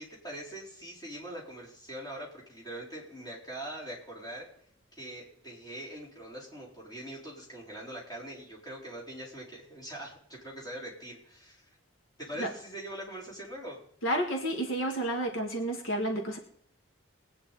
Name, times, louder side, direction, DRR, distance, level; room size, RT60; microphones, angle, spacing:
voice 1, 0.0-4.5 4.9-11.7 12.2-13.8, right 1 dB, 20° left, -4 dB, 4.2 m, -42 dB
voice 2, 14.0-16.4, right 1 dB, 75° left, 2 dB, 1.9 m, -30 dB
21.0 x 9.4 x 4.2 m, 0.65 s
head